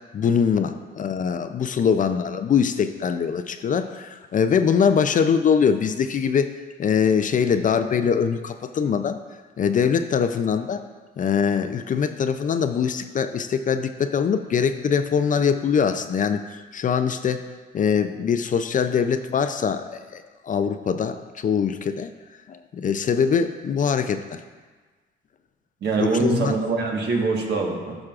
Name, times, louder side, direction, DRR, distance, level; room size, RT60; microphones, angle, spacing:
voice 1, 0.1-6.5 6.8-9.2 9.6-10.8 11.2-16.4 16.7-17.4 17.7-22.1 22.5-24.4 26.0-26.5, left 7 dB, 40° left, 9 dB, 0.4 m, -22 dB
voice 2, 25.8-28.0, right 4 dB, 60° right, 0 dB, 1.4 m, -23 dB
11.5 x 6.1 x 2.5 m, 1.4 s
cardioid pair, 90°, 20 cm